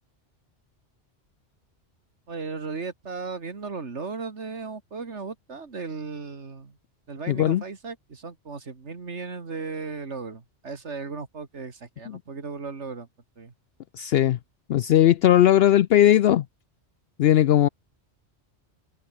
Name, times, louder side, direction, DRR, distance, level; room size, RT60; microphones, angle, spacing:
voice 1, 2.3-6.8 7.1-13.1 13.4-13.5, right 4 dB, 85° right, 2.5 m, -36 dB
voice 2, 7.3-7.6 12.1-12.2 14.0-14.4 14.7-16.4 17.2-17.7, left 12 dB, 65° left, 0.7 m, -18 dB
omnidirectional pair, 1.1 m